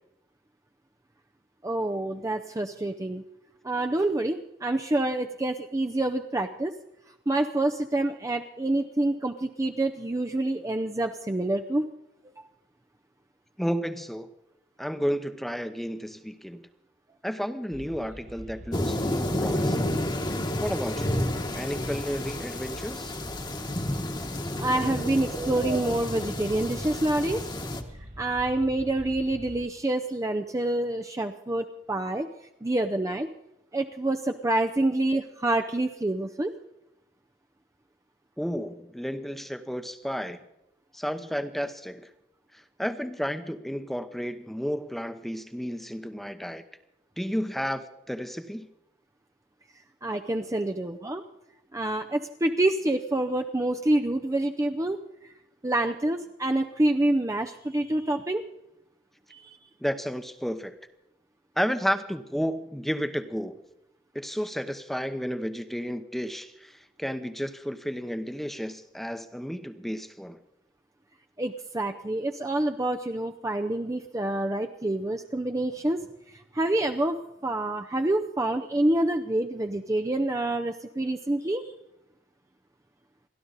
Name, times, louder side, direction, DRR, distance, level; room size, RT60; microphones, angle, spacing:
voice 1, 1.6-3.2 3.6-6.8 7.3-11.9 24.6-27.4 28.2-32.3 32.6-33.3 33.7-36.5 50.0-51.2 51.7-55.0 55.2-55.3 55.6-58.4 59.3-59.6 71.4-76.0 76.3-81.7, right 1 dB, 20° right, 5 dB, 0.6 m, -27 dB
voice 2, 13.6-14.3 14.8-16.6 17.2-19.9 20.6-21.2 21.5-23.2 38.4-40.4 40.9-42.1 42.5-46.6 47.2-48.7 59.8-60.8 61.6-63.6 64.1-70.4, equal, ahead, 10 dB, 0.9 m, -32 dB
sound 1, 17.7-29.7, right 1 dB, 40° right, 2.1 m, -43 dB
sound 2, 18.7-27.8, left 1 dB, 25° left, 1.3 m, -30 dB
29.5 x 12.0 x 4.1 m, 0.88 s
head